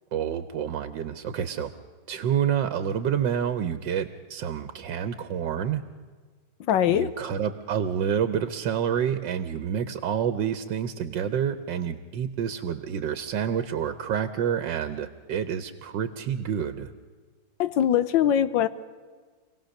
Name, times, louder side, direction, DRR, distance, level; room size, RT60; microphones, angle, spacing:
voice 1, 0.1-1.7 2.1-5.8 6.9-16.9, right 8 dB, 80° right, 10 dB, 1.5 m, -28 dB
voice 2, 6.6-7.1 17.6-18.7, left 10 dB, 90° left, 14 dB, 1.5 m, -22 dB
26.0 x 17.5 x 6.5 m, 1.5 s
omnidirectional pair, 2.0 m